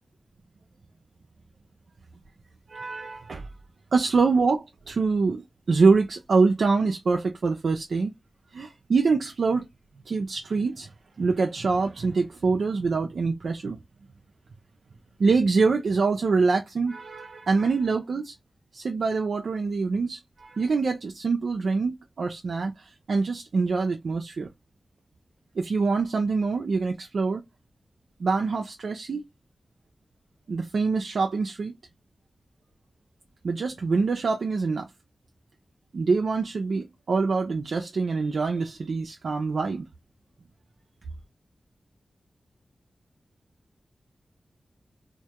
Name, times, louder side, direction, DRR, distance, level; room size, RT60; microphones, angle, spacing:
voice 1, 2.7-3.5 3.9-8.1 8.5-9.7 10.1-10.9 11.2-13.8 15.2-18.3 18.7-24.5 25.6-27.4 28.2-29.2 30.5-31.7 33.4-34.9 35.9-39.8, right 4 dB, 80° right, 0.3 m, -25 dB
2.2 x 2.1 x 2.8 m
cardioid pair, 50°, 0 cm